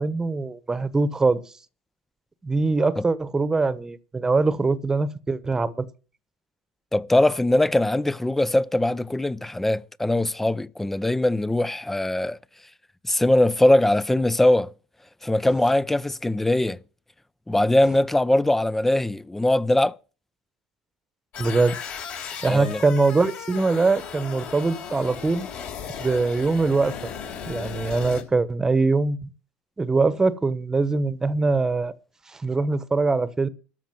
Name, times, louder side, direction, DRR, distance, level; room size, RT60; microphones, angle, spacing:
voice 1, 0.0-1.4 2.4-5.9 21.4-21.8 22.3-25.5 26.0-27.0 27.5-29.3 29.8-31.9 32.3-33.5, right 3 dB, 15° right, 1.1 m, -22 dB
voice 2, 6.9-12.4 13.1-14.7 15.2-16.8 17.5-19.9 22.5-22.8, left 1 dB, 5° left, 0.5 m, -21 dB
sound 1, 21.3-28.2, left 7 dB, 55° left, 3.8 m, -36 dB
13.5 x 6.3 x 7.8 m
supercardioid pair, 100°, 4 cm